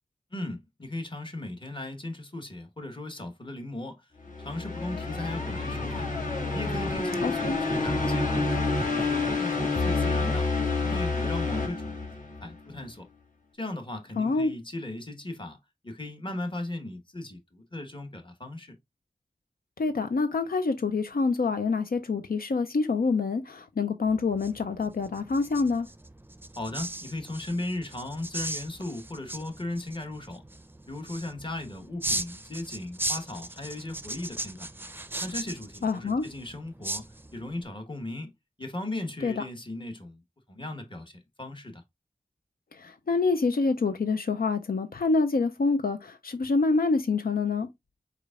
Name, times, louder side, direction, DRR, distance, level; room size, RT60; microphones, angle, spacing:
voice 1, 0.3-4.1 4.4-6.1 6.5-10.5 10.8-13.1 13.5-15.6 15.8-18.8 26.6-30.4 30.9-34.7 35.2-40.2 40.5-41.8, left 1 dB, 35° left, 1.3 m, -37 dB
sound 1, 4.2-12.6, left 3 dB, 60° left, 1.8 m, -28 dB
voice 2, 7.2-7.6 14.2-14.5 19.8-25.9 35.8-36.2 39.2-39.3 42.7-47.7, left 4 dB, 85° left, 0.5 m, -26 dB
sound 2, 24.0-37.6, right 1 dB, 15° right, 0.5 m, -38 dB
4.9 x 4.5 x 2.4 m
wide cardioid pair, 50°, 15 cm